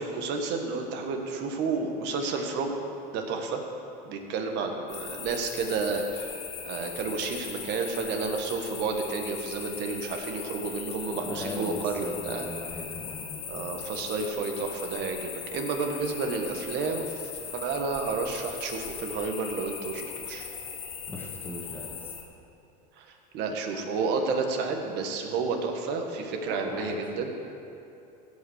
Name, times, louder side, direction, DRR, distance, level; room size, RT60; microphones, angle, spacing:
voice 1, 0.0-2.7 3.1-3.6 4.0-6.3 6.7-12.5 13.5-17.0 17.5-20.5 23.0-23.1 23.3-27.3, right 4 dB, 55° right, 4 dB, 1.6 m, -31 dB
sound 1, 4.9-22.2, left 7 dB, 65° left, 2.0 m, -39 dB
voice 2, 11.2-13.7 21.1-22.1 26.4-27.0, left 1 dB, 10° left, -2 dB, 1.8 m, -39 dB
16.0 x 5.4 x 6.5 m, 2.8 s
supercardioid pair, 120°, 21 cm